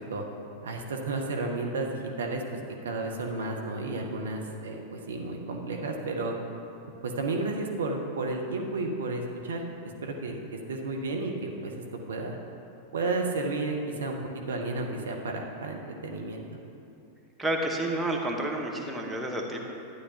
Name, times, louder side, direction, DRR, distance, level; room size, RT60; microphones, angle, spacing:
voice 1, 0.6-2.4 2.8-6.3 7.0-9.7 10.0-10.4 10.7-11.8 12.1-12.4 12.9-14.2 14.5-16.4, right 3 dB, 65° right, 1 dB, 0.9 m, -32 dB
voice 2, 17.4-19.6, right 1 dB, 10° right, 0 dB, 1.1 m, -30 dB
12.5 x 9.8 x 2.8 m, 2.7 s
figure-of-eight pair, 90°, 0 cm